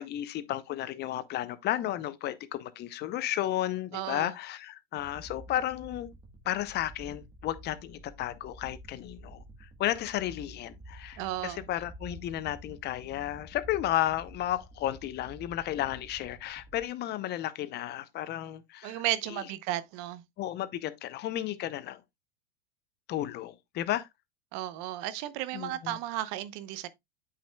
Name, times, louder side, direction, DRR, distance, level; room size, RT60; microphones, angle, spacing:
voice 1, 0.0-6.1 6.5-19.0 19.3-19.4 20.4-22.0 23.1-24.1 25.5-26.0, left 13 dB, 35° left, 0.7 m, -33 dB
voice 2, 3.9-4.3 11.2-11.6 18.8-20.2 24.5-26.9, right 14 dB, 50° right, 0.8 m, -34 dB
sound 1, 5.0-16.8, right 1 dB, 15° right, 1.2 m, -50 dB
8.3 x 6.0 x 2.2 m
hypercardioid pair, 105°, 30 cm